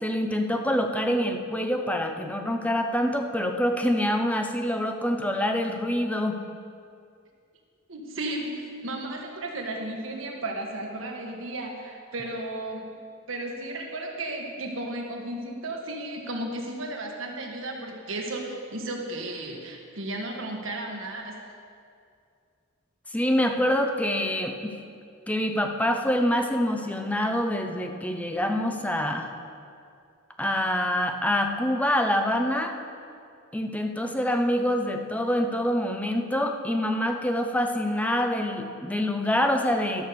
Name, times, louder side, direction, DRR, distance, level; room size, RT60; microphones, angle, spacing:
voice 1, 0.0-6.4 23.1-24.7 25.3-29.3 30.4-32.7 33.5-40.1, equal, 5° left, 4 dB, 0.7 m, -26 dB
voice 2, 7.9-12.9 13.3-21.3, right 1 dB, 75° right, 1 dB, 1.6 m, -34 dB
12.0 x 6.4 x 6.8 m, 2.4 s
head